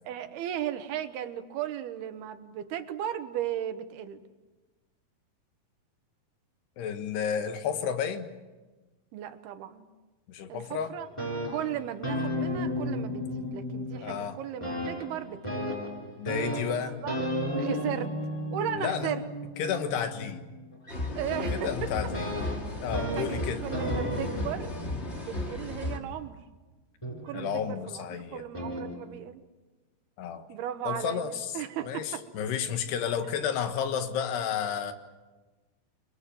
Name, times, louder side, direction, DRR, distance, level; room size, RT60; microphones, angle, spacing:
voice 1, 0.0-4.2 9.1-9.9 10.5-11.1 11.5-15.7 17.0-17.1 17.6-18.1 18.5-19.2 21.1-22.1 23.0-24.7 25.3-26.4 27.2-28.1 28.3-29.4 30.5-32.2, right 10 dB, 75° right, 9 dB, 3.2 m, -36 dB
voice 2, 6.8-8.3 10.3-11.0 14.0-14.4 16.2-17.0 18.8-19.1 19.6-20.4 21.5-22.3 22.8-23.6 27.3-28.4 30.2-30.5 30.8-31.6 31.8-34.9, left 8 dB, 80° left, 8 dB, 3.7 m, -31 dB
sound 1, 11.0-14.3 14.6-26.2 27.0-27.8 28.5-28.9, equal, 5° left, 6.8 m, -34 dB
sound 2, 20.9-26.0, left 1 dB, 20° left, 1.8 m, -34 dB
29.5 x 22.5 x 7.7 m, 1.2 s
omnidirectional pair, 4.7 m